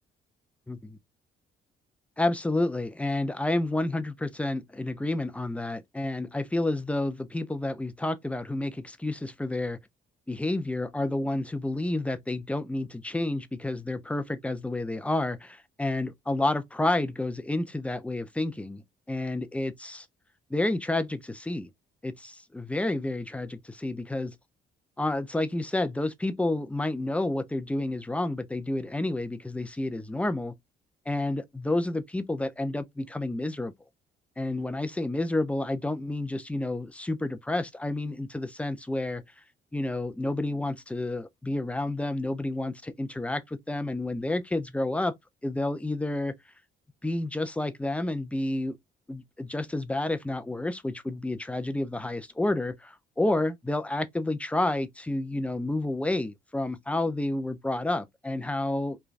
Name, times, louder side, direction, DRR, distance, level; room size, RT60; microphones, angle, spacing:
voice 1, 2.2-9.8 10.3-20.1 20.5-21.7 22.0-24.3 25.0-30.5 31.1-33.7 34.4-39.2 39.7-45.1 45.4-46.3 47.0-48.7 49.1-59.0, left 2 dB, 5° left, 0.4 m, -30 dB
3.1 x 2.3 x 2.4 m
cardioid pair, 90°, 20 cm